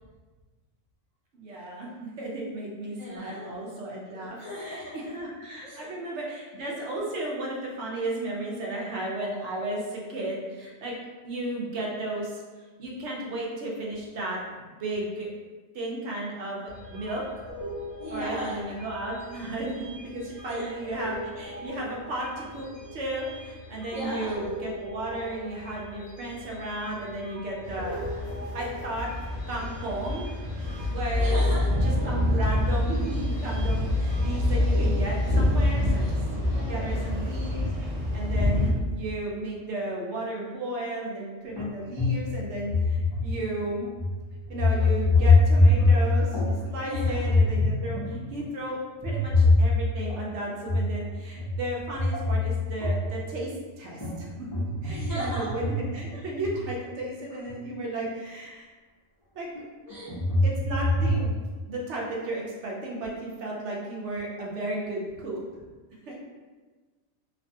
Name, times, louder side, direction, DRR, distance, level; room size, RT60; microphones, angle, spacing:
voice 1, 1.3-10.9 11.2-12.4 12.8-15.3 15.7-17.2 18.1-22.7 22.9-29.1 29.5-30.3 30.9-31.4 31.8-36.2 36.6-43.9 44.5-48.8 49.0-53.5 53.8-54.3 54.8-58.7 59.4-59.5 60.4-61.3 61.7-65.4 66.1-66.2, right 1 dB, 65° right, -3 dB, 0.8 m, -34 dB
voice 2, 3.0-3.6 4.1-5.2 5.6-6.0 18.0-18.6 20.5-20.7 23.9-24.5 31.1-31.7 32.0-32.2 36.0-36.8 46.8-47.3 54.8-55.5 56.1-56.3 59.9-60.2 66.1-66.2, equal, 80° left, -7 dB, 0.3 m, -37 dB
sound 1, 16.7-35.2, equal, 45° left, 1.0 m, -41 dB
sound 2, 27.6-38.7, left 1 dB, 40° right, 0.5 m, -26 dB
sound 3, 41.6-41.7 42.0-43.5 44.0-44.2 44.5-46.6 46.9-48.4 49.0-50.2 50.6-51.0 51.3-53.4 54.0-56.6 57.5-57.6 58.1-58.2 59.5-61.2, left 2 dB, 25° left, 0.6 m, -23 dB
2.5 x 2.2 x 2.6 m, 1.3 s
omnidirectional pair, 1.4 m